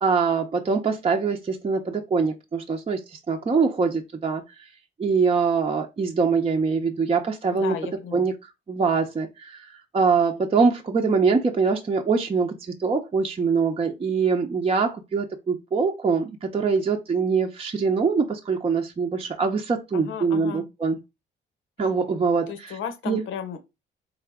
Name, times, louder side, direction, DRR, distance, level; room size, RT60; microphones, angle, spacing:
voice 1, 0.0-4.4 5.0-7.8 8.1-8.3 8.7-21.0 21.8-22.8 23.1-23.2, right 5 dB, 30° right, 0.7 m, -23 dB
voice 2, 7.5-8.3 19.9-20.6 22.5-23.7, left 8 dB, 80° left, 1.0 m, -34 dB
4.0 x 3.7 x 3.5 m
cardioid pair, 90°, 20 cm